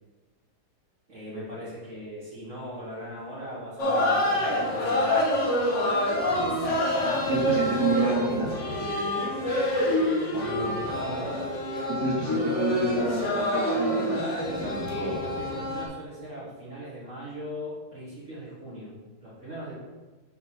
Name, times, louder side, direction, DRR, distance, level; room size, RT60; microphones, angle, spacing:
voice 1, 1.1-5.6 10.3-11.4 14.9-18.9 19.2-19.7, equal, 40° right, -8 dB, 1.8 m, -39 dB
sound 1, 3.8-15.9, left 1 dB, 45° left, 1.2 m, -27 dB
voice 2, 6.3-8.5 11.9-15.2, right 2 dB, 15° right, -7 dB, 1.5 m, -29 dB
6.4 x 3.1 x 5.7 m, 1.2 s
omnidirectional pair, 2.3 m